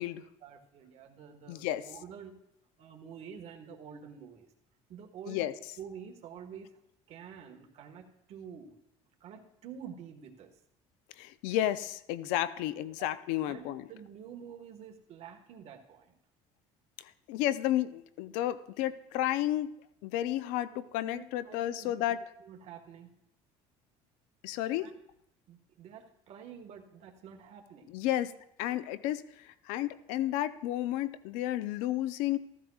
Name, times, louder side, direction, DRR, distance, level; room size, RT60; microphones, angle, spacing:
voice 1, 0.4-2.4 2.8-4.5 4.9-5.5 5.8-6.8 7.1-8.8 9.2-10.5 13.0-13.1 13.5-16.1 21.1-21.9 22.4-23.1 24.8-24.9 25.5-27.9, right 7 dB, 55° right, 3 dB, 1.5 m, -48 dB
voice 2, 1.5-1.9 5.3-5.5 11.2-13.9 17.0-19.7 20.0-22.2 24.4-24.9 27.9-28.3 28.6-32.4, left 13 dB, 85° left, 15 dB, 0.5 m, -32 dB
15.0 x 14.0 x 2.4 m, 0.78 s
cardioid pair, 110°, 13 cm